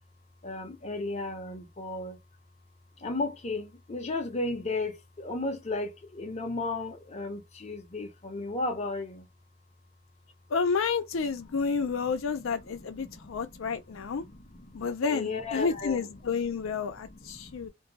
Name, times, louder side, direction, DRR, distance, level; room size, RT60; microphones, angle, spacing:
voice 1, 0.4-2.2 3.0-9.3 12.8-16.0 17.1-17.7, left 2 dB, 35° left, 0.6 m, -35 dB
voice 2, 10.5-14.2 14.7-17.7, left 5 dB, 90° left, 0.5 m, -30 dB
2.6 x 2.2 x 2.7 m
head